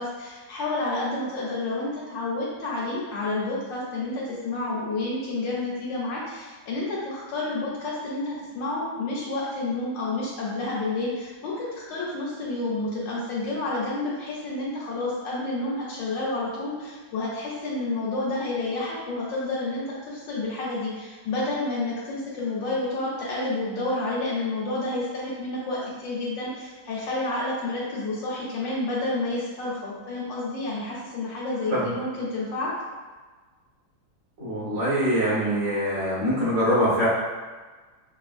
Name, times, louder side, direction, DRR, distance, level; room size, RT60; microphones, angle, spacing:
voice 1, 0.0-32.7, left 2 dB, 85° left, -7 dB, 1.5 m, -30 dB
voice 2, 34.4-37.1, equal, 45° right, -8 dB, 1.7 m, -23 dB
5.5 x 2.5 x 2.5 m, 1.4 s
omnidirectional pair, 1.9 m